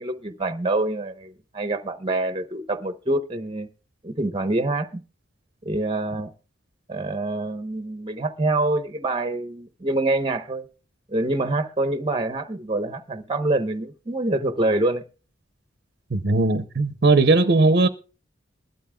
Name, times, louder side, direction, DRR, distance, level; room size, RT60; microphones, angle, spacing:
voice 1, 0.0-3.7 4.0-5.0 5.6-6.3 6.9-10.7 11.1-15.1, right 2 dB, 25° right, 0.8 m, -26 dB
voice 2, 16.1-17.9, right 3 dB, 55° right, 0.7 m, -18 dB
21.0 x 12.5 x 2.2 m
head